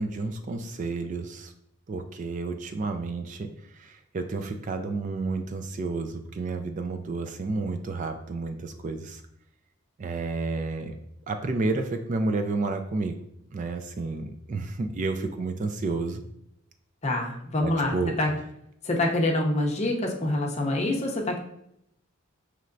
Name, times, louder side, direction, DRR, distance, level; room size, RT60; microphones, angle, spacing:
voice 1, 0.0-1.5 1.9-9.2 10.0-11.0 11.3-13.1 13.5-16.2 17.6-18.1, right 3 dB, 35° right, 6 dB, 0.3 m, -31 dB
voice 2, 17.0-18.3 18.8-21.4, left 1 dB, 30° left, 0 dB, 0.6 m, -26 dB
5.5 x 3.1 x 2.5 m, 0.77 s
head